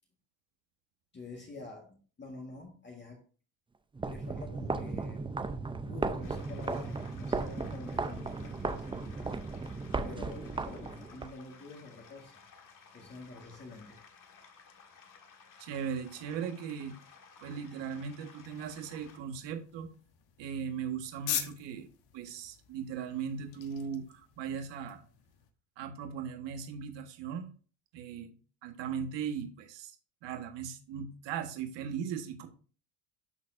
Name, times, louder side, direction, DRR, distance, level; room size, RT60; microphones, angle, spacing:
voice 1, 1.1-3.2 4.0-5.2 5.8-9.0 10.0-12.4 12.9-14.0, left 3 dB, 25° left, 0 dB, 1.6 m, -47 dB
sound 1, 3.9-11.3, right 3 dB, 10° right, 0.5 m, -36 dB
sound 2, 6.2-19.2, left 5 dB, 45° left, 1.6 m, -57 dB
voice 2, 15.6-17.0 17.4-19.9 20.4-21.9 22.1-25.0 25.8-27.5 27.9-28.3 28.6-29.9 30.2-32.5, right 7 dB, 65° right, 5 dB, 1.6 m, -38 dB
sound 3, 18.4-25.5, left 11 dB, 65° left, 1.3 m, -43 dB
12.0 x 4.1 x 2.6 m, 0.39 s
supercardioid pair, 105°, 46 cm